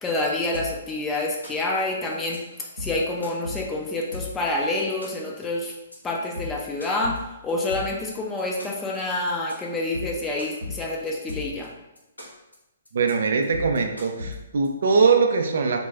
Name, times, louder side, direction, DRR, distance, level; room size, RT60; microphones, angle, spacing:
voice 1, 0.0-2.4 2.8-5.7 6.0-7.1 7.4-11.7, left 2 dB, 15° left, -2 dB, 0.4 m, -27 dB
sound 1, 0.5-0.9 1.2-1.8 2.1-2.4 2.7-4.5 4.8-5.4 5.7-5.9 6.3-8.1 8.4-9.0 9.3-9.5 9.8-11.6 12.0-12.5 12.9-13.1 13.4-14.7, left 3 dB, 85° left, 0.7 m, -36 dB
voice 2, 12.9-15.9, right 4 dB, 55° right, 4 dB, 0.3 m, -21 dB
2.3 x 2.0 x 3.3 m, 0.97 s
figure-of-eight pair, 125°, 0 cm